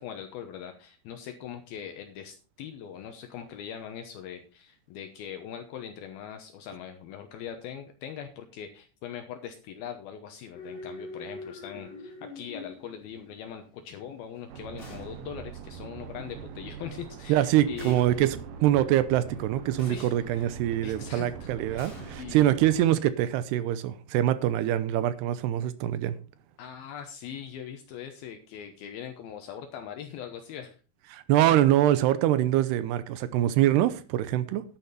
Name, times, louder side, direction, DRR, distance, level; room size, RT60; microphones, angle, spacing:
voice 1, 0.0-18.0 19.8-20.5 20.8-22.5 26.6-30.8, left 8 dB, 75° left, 2.7 m, -41 dB
sound 1, 10.5-21.1, left 3 dB, 45° left, 3.3 m, -47 dB
sound 2, 14.5-22.8, right 8 dB, 65° right, 2.3 m, -43 dB
sound 3, 14.8-15.5 17.8-18.6 19.8-20.6 21.8-23.0, left 1 dB, 25° left, 4.7 m, -49 dB
voice 2, 17.3-26.2 31.1-34.6, right 13 dB, 80° right, 2.8 m, -24 dB
10.5 x 10.5 x 4.2 m
omnidirectional pair, 4.8 m